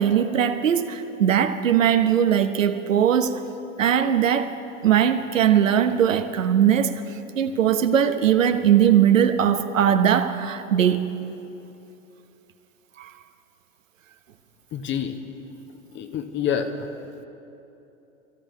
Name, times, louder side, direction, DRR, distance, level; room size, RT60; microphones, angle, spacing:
voice 1, 0.0-3.5 3.8-4.5 4.8-6.9 7.3-11.1 13.0-13.1, right 9 dB, 70° right, 1.0 m, -20 dB
voice 2, 14.7-15.2 15.9-16.9, left 8 dB, 30° left, 1.1 m, -27 dB
28.0 x 14.0 x 3.1 m
figure-of-eight pair, 90°, 40 cm